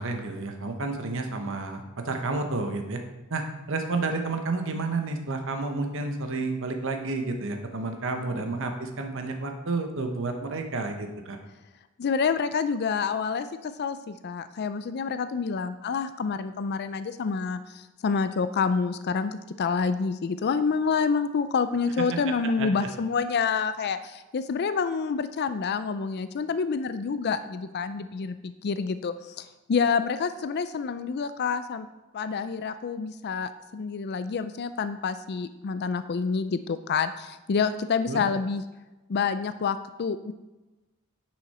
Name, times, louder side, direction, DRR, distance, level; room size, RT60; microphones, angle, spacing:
voice 1, 0.0-3.0 3.3-11.4 22.1-22.2 22.6-22.9 38.1-38.2, right 3 dB, 60° right, 5 dB, 1.0 m, -30 dB
voice 2, 12.0-31.9 32.1-38.6 39.1-40.3, left 5 dB, 50° left, 12 dB, 0.4 m, -28 dB
10.0 x 6.4 x 4.2 m, 1.1 s
head